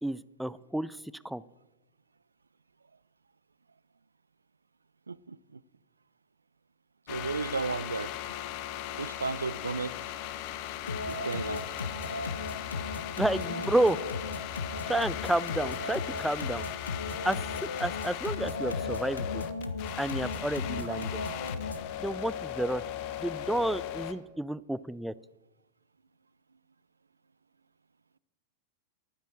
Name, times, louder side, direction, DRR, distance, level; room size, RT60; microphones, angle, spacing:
voice 1, 0.0-1.0 1.2-1.4 13.2-14.0 14.9-16.6 17.3-19.4 20.0-21.2 22.0-22.8 23.2-25.1, right 1 dB, 5° right, 0.5 m, -30 dB
voice 2, 5.1-5.6 7.1-8.1 8.9-9.9 11.1-11.6 17.0-17.2, right 4 dB, 75° right, 0.4 m, -34 dB
sound 1, 7.1-24.1, left 11 dB, 45° left, 1.0 m, -38 dB
sound 2, 10.9-21.9, left 3 dB, 75° left, 1.1 m, -36 dB
12.0 x 9.9 x 7.7 m
figure-of-eight pair, 90°, 0 cm